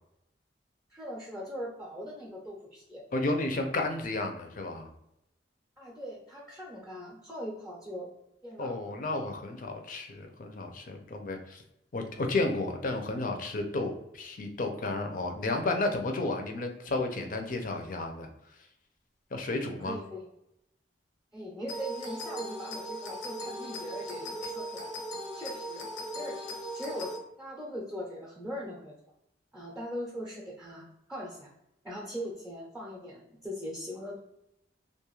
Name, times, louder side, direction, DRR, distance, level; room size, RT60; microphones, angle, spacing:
voice 1, 0.9-3.0 5.8-8.1 8.4-8.7 19.8-20.2 21.3-25.0 25.4-25.8 26.1-26.4 26.7-28.9 29.5-31.5 31.8-34.2, equal, 5° right, -3 dB, 0.6 m, -40 dB
voice 2, 3.1-4.9 8.6-11.6 11.9-18.3 19.3-20.0, left 2 dB, 50° left, 4 dB, 0.5 m, -32 dB
sound 1, 21.7-27.2, equal, 85° left, 0.7 m, -38 dB
2.5 x 2.3 x 3.0 m, 0.83 s
head